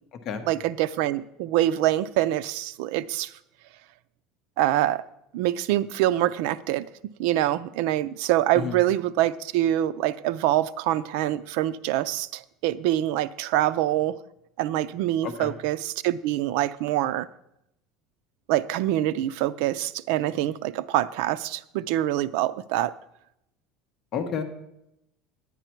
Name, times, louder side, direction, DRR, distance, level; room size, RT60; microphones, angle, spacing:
voice 1, 0.5-3.3 4.6-5.0 5.3-6.8 7.2-14.2 14.6-17.3 18.5-22.9, right 14 dB, 65° right, 15 dB, 0.4 m, -25 dB
voice 2, 15.2-15.5 24.1-24.4, left 7 dB, 35° left, 6 dB, 1.0 m, -30 dB
9.8 x 9.4 x 4.5 m, 0.81 s
cardioid pair, 165°, 0 cm